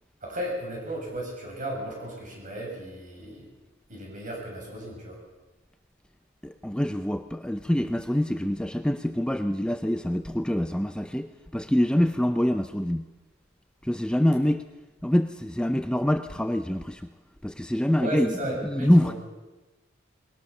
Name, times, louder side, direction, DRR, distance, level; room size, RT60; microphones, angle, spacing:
voice 1, 0.2-3.5 3.9-5.2 18.0-19.2, right 1 dB, 40° right, -1 dB, 7.2 m, -34 dB
voice 2, 6.4-13.0 13.8-14.7 15.0-17.1 17.4-18.4 18.6-19.1, left 1 dB, 5° left, 8 dB, 0.6 m, -25 dB
21.0 x 17.5 x 7.0 m, 1.1 s
head